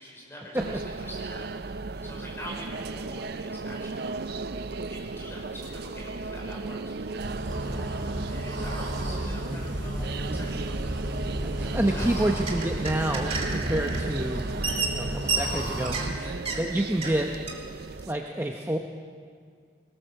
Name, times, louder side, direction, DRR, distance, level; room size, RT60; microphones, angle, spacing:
voice 1, 0.0-4.1 4.9-12.1 16.1-16.4, equal, 15° left, -3 dB, 5.4 m, -45 dB
sound 1, 0.5-18.1, right 3 dB, 55° right, 0.5 m, -36 dB
sound 2, 7.2-16.1, right 1 dB, 70° right, 3.1 m, -33 dB
voice 2, 11.4-14.5 14.9-16.2 16.6-17.3 18.0-18.8, right 1 dB, 10° right, 2 dB, 0.8 m, -28 dB
sound 3, 12.5-14.1 14.4-16.1 16.4-16.6 17.0-17.2 17.5-17.6, right 4 dB, 30° right, 2.1 m, -31 dB
21.5 x 18.5 x 6.6 m, 2.1 s
head